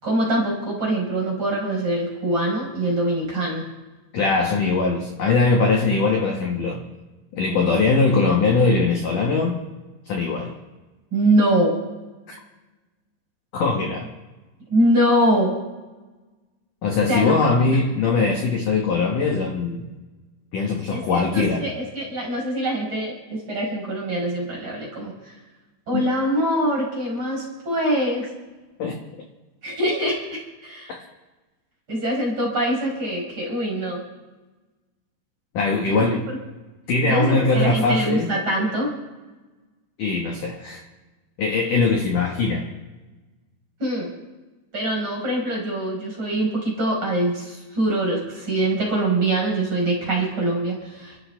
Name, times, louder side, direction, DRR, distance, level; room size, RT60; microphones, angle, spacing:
voice 1, 0.0-3.6 11.1-11.7 14.7-15.5 17.1-17.3 20.9-25.4 25.9-28.3 29.6-30.9 31.9-34.0 35.9-36.2 37.1-38.9 43.8-44.1 44.7-51.2, right 1 dB, 25° right, -2 dB, 5.3 m, -23 dB
voice 2, 4.1-6.8 7.3-9.6 10.1-10.5 12.3-12.4 13.5-14.1 16.8-19.9 20.5-21.7 25.9-26.1 28.8-29.0 30.9-31.0 35.5-36.2 36.9-38.3 40.0-40.8 41.4-42.7, left 3 dB, 65° left, 0 dB, 2.1 m, -21 dB
29.5 x 13.0 x 3.5 m, 1.2 s
omnidirectional pair, 6.0 m